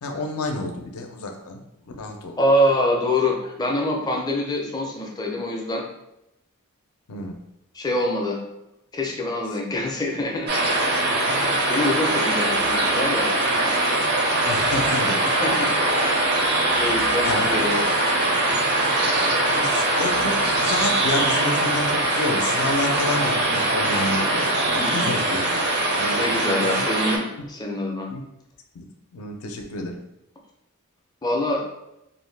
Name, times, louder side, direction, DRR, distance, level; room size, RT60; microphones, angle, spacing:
voice 1, 0.0-1.6 2.0-2.4 7.1-7.4 14.5-15.3 17.2-17.5 19.4-25.6 26.0-26.7 27.4-27.5 28.1-28.2 28.7-28.9 29.1-30.0, left 2 dB, 75° left, 4 dB, 0.5 m, -29 dB
voice 2, 2.4-5.8 7.7-8.4 8.9-10.5 11.7-13.8 15.3-15.7 16.8-17.8 24.8-25.1 26.2-28.1 31.2-31.6, left 1 dB, 20° left, 0 dB, 0.4 m, -25 dB
sound 1, 10.5-27.2, right 2 dB, 50° right, 0.5 m, -22 dB
2.5 x 2.1 x 3.2 m, 0.88 s
head